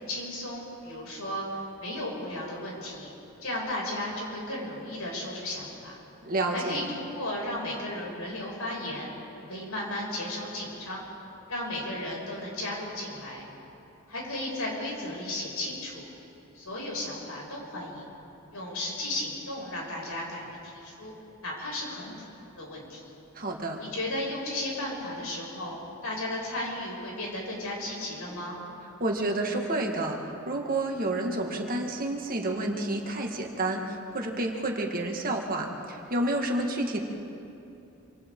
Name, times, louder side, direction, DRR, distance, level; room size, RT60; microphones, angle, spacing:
voice 1, 0.0-3.1 3.4-6.0 6.5-9.1 9.5-11.0 11.5-13.4 14.1-16.1 16.5-18.1 18.5-21.1 21.4-23.1 23.8-28.6, left 1 dB, 85° left, -3 dB, 6.9 m, -35 dB
voice 2, 6.3-6.8 23.3-23.8 29.0-37.0, right 2 dB, 40° right, 1 dB, 1.9 m, -29 dB
27.0 x 26.5 x 3.9 m, 2.8 s
head